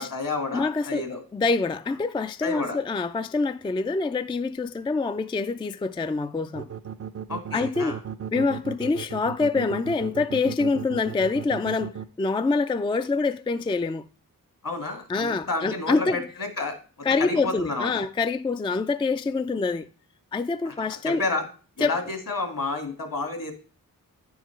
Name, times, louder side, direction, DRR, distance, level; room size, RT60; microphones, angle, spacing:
voice 1, 0.0-1.2 2.4-2.8 7.3-8.0 14.6-16.8 17.2-18.0 20.7-20.8 21.1-21.5 21.8-23.5, left 3 dB, 65° left, 2.0 m, -30 dB
voice 2, 0.5-1.1 1.3-6.7 7.5-8.0 8.3-14.1 15.1-16.2 17.0-19.9 20.3-21.2 21.8-22.0, left 4 dB, 15° left, 0.3 m, -26 dB
sound 1, 6.5-12.0, right 9 dB, 40° right, 0.5 m, -35 dB
9.1 x 4.8 x 4.4 m
cardioid pair, 55°, 36 cm